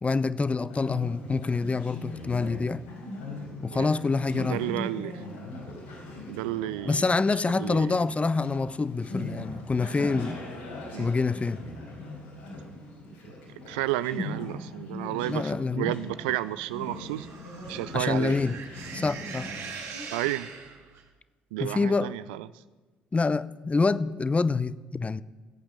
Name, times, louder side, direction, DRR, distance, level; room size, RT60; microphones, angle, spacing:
voice 1, 0.0-2.8 3.6-4.6 6.9-10.4 11.0-11.6 15.2-16.0 17.9-18.6 18.9-19.5 21.6-22.1 23.1-25.2, left 4 dB, 25° left, 0.6 m, -26 dB
Conversation, 0.6-20.3, left 1 dB, 75° left, 4.5 m, -40 dB
voice 2, 4.3-5.2 6.3-7.0 7.5-8.0 10.9-11.1 13.7-17.3 17.7-18.4 20.1-20.5 21.5-22.5, right 16 dB, 75° right, 0.4 m, -31 dB
sound 1, 16.8-21.1, right 6 dB, 55° right, 1.9 m, -42 dB
16.0 x 8.7 x 6.4 m
figure-of-eight pair, 50°, 5 cm